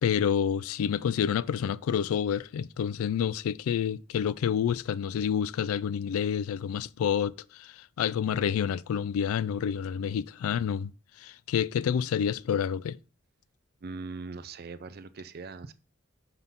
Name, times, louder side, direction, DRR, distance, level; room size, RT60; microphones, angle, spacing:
voice 1, 0.0-10.9 11.2-13.0, left 8 dB, 85° left, 0.3 m, -28 dB
voice 2, 13.8-15.7, right 4 dB, 45° right, 0.5 m, -40 dB
5.8 x 3.6 x 5.7 m
head